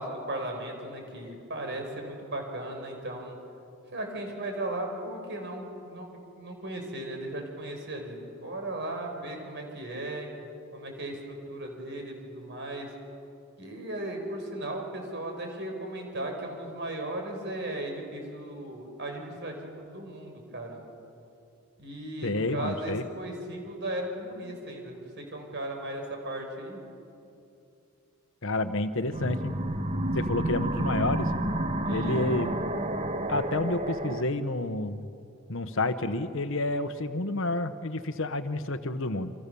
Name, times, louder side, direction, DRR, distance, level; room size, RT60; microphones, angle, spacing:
voice 1, 0.0-3.4 3.9-6.1 6.4-10.3 10.7-12.9 13.6-20.8 21.8-26.8 31.8-32.3, right 1 dB, 50° right, 3 dB, 5.7 m, -36 dB
voice 2, 22.2-23.0 28.4-29.5 30.1-31.3 31.9-32.5 33.3-35.1 35.5-39.3, left 2 dB, 60° left, 10 dB, 1.1 m, -29 dB
sound 1, 29.1-34.2, right 1 dB, 30° right, 1.2 m, -30 dB
29.5 x 25.0 x 7.1 m, 2.6 s
head